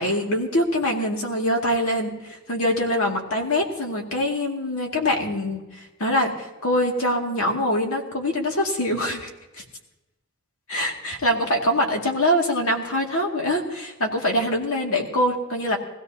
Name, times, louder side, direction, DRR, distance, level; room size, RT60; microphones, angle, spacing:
voice 1, 0.0-9.3 10.7-15.8, left 1 dB, 75° left, 1 dB, 2.2 m, -24 dB
20.5 x 16.0 x 2.8 m, 1.0 s
head